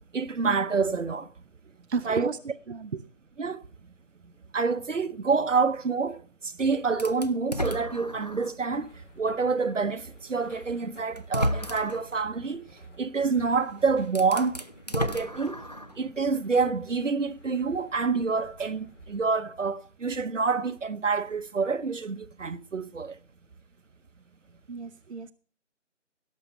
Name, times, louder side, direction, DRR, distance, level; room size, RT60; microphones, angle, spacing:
voice 1, 0.1-1.3 2.0-2.3 3.4-3.6 4.5-6.2 6.6-8.9 9.2-12.6 13.0-14.6 14.9-15.6 16.0-23.1, right 4 dB, 80° right, 1.0 m, -27 dB
voice 2, 1.9-2.4 2.7-3.0 24.7-25.3, right 5 dB, 65° right, 0.7 m, -33 dB
sound 1, 7.0-8.6 9.2-9.3 10.5-10.6 11.2-12.1 13.6-13.7 14.1-16.0, equal, 35° left, 0.5 m, -32 dB
sound 2, 8.7-19.2, left 1 dB, 85° left, 5.7 m, -55 dB
16.5 x 6.6 x 5.4 m
figure-of-eight pair, 165°, 37 cm